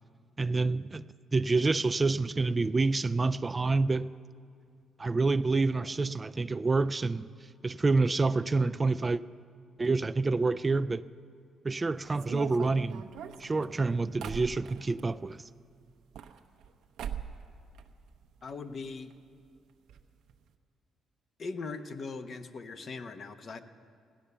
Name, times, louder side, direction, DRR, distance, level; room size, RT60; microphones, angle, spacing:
voice 1, 0.4-1.1 1.3-4.1 5.0-7.3 7.6-9.2 9.8-11.0 11.6-13.1 13.4-15.4, right 3 dB, 25° right, 0.3 m, -27 dB
sound 1, 12.1-15.1 15.9-16.7 17.0-17.5 17.7-18.5 18.8-18.9 19.1-19.2 19.9-20.0 20.3-20.5, right 8 dB, 80° right, 0.8 m, -41 dB
voice 2, 18.4-19.1 21.4-23.6, left 4 dB, 50° left, 0.9 m, -40 dB
16.5 x 11.5 x 6.8 m
cardioid pair, 90°, 0 cm